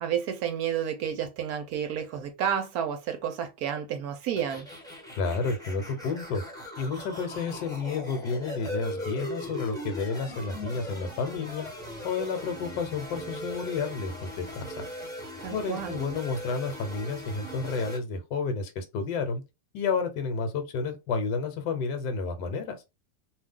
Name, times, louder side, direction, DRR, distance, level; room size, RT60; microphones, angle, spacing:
voice 1, 0.0-4.7 15.4-16.0, right 8 dB, 70° right, 0.9 m, -31 dB
sound 1, 4.4-18.0, equal, 5° left, 0.8 m, -39 dB
voice 2, 5.2-6.4 6.8-11.6 12.0-14.7 15.5-19.4 19.7-22.8, left 4 dB, 75° left, 1.4 m, -31 dB
2.8 x 2.3 x 3.5 m
omnidirectional pair, 1.9 m